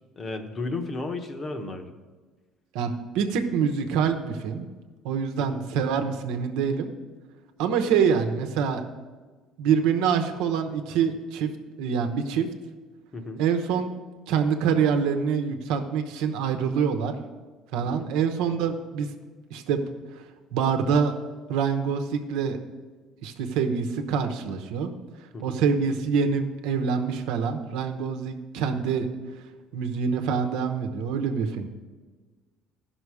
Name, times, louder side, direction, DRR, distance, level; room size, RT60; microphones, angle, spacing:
voice 1, 0.2-1.9 5.4-5.6 13.1-13.4 17.8-18.1 25.3-25.6, left 3 dB, 30° left, 6 dB, 1.0 m, -34 dB
voice 2, 2.7-4.7 5.0-6.9 7.6-8.8 9.6-11.5 11.8-12.5 13.4-13.9 14.3-17.1 17.7-19.1 19.5-19.8 20.5-21.1 21.5-22.6 23.2-24.9 25.4-29.1 29.7-31.7, right 6 dB, 85° right, 7 dB, 1.0 m, -25 dB
14.5 x 6.0 x 4.8 m, 1.4 s
cardioid pair, 135°, 0 cm